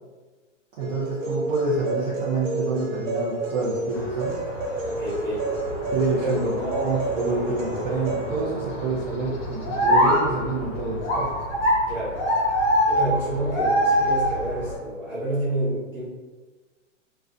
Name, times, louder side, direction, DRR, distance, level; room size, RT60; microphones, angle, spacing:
voice 1, 0.8-4.4 5.9-11.4, right 3 dB, 35° right, -8 dB, 0.5 m, -27 dB
sound 1, 0.8-8.4, right 2 dB, 80° right, 0.8 m, -30 dB
sound 2, 3.9-14.8, equal, 40° left, 0.7 m, -26 dB
voice 2, 4.9-5.5 6.2-6.4 11.9-12.2 12.9-16.0, right 1 dB, 5° right, -11 dB, 0.8 m, -28 dB
2.5 x 2.2 x 2.4 m, 1.3 s
hypercardioid pair, 135°, 38 cm